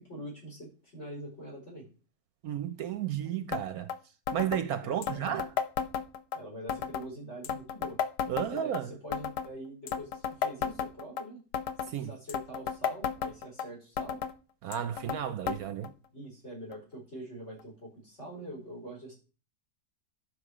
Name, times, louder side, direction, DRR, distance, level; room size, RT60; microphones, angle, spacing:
voice 1, 0.0-1.9 4.8-5.4 6.3-8.0 8.5-11.4 12.1-14.2 16.1-19.1, right 1 dB, 45° left, 5.2 m, -44 dB
voice 2, 2.4-3.9 4.3-5.5 8.3-8.9 11.9-12.1 14.6-15.9, right 10 dB, 70° right, 1.1 m, -33 dB
sound 1, 3.5-3.6 3.9-4.0 4.3-4.6 5.0-6.4 6.7-7.1 7.4-8.8 9.1-9.5 9.9-11.2 11.5-11.9 12.3-13.7 14.0-14.3 14.7-15.2 15.5-15.6 15.8-15.9 16.7-16.8 17.6-17.7, left 8 dB, 90° left, 1.4 m, -33 dB
11.0 x 6.7 x 5.0 m
omnidirectional pair, 1.7 m